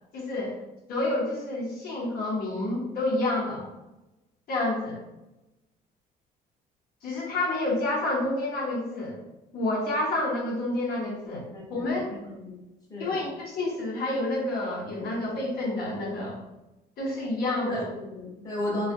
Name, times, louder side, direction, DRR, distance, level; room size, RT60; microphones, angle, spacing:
voice 1, 0.1-0.5 0.9-3.7 4.5-5.0 7.0-9.2 9.5-11.4 11.7-12.1 13.0-16.4 17.0-17.9, left 2 dB, 65° left, -5 dB, 0.8 m, -29 dB
voice 2, 11.5-11.9 12.2-12.6 12.9-13.1 17.6-18.9, left 1 dB, 20° left, -5 dB, 1.0 m, -33 dB
2.5 x 2.4 x 2.5 m, 0.96 s
cardioid pair, 110°, 17 cm